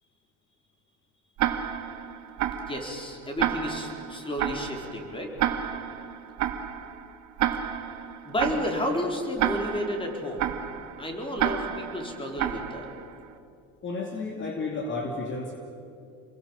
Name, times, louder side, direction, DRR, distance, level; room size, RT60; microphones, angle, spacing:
Tick-tock, 1.4-13.2, right 10 dB, 60° right, 2.3 m, -31 dB
voice 1, 2.7-5.3 8.2-10.5 11.0-12.9, left 1 dB, 15° left, 2 dB, 4.5 m, -31 dB
voice 2, 13.8-15.5, left 3 dB, 35° left, 1 dB, 2.9 m, -32 dB
29.5 x 22.0 x 7.4 m, 2.6 s
cardioid pair, 140°, 33 cm